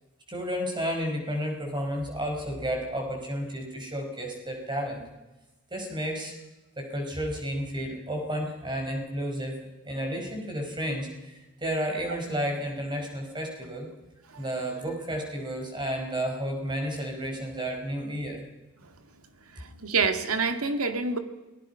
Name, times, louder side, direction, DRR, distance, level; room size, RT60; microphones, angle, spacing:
voice 1, 0.3-5.0 5.7-6.3 6.8-9.5 9.9-13.9 14.4-18.4, equal, 20° right, 2 dB, 5.3 m, -32 dB
voice 2, 19.5-21.2, right 4 dB, 80° right, 8 dB, 2.0 m, -27 dB
28.5 x 20.0 x 5.7 m, 1.1 s
head